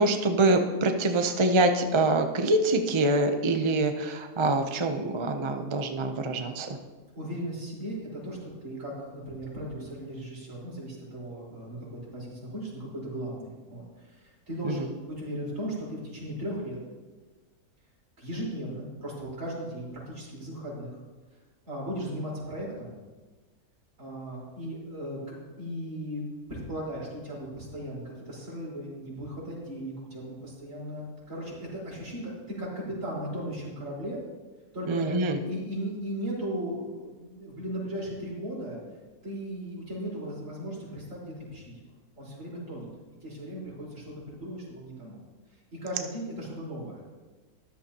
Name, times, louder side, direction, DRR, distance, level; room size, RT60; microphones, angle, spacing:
voice 1, 0.0-6.7 14.6-14.7 34.9-35.4, right 2 dB, 35° right, 5 dB, 0.4 m, -25 dB
voice 2, 7.1-16.8 18.2-21.0 21.6-22.9 24.0-26.2 26.5-34.2 34.7-35.2 35.5-38.8 39.2-41.8 42.2-42.9 43.2-45.2 45.5-47.0, equal, 55° right, -7 dB, 5.0 m, -37 dB
14.0 x 12.0 x 2.9 m, 1.3 s
omnidirectional pair, 1.6 m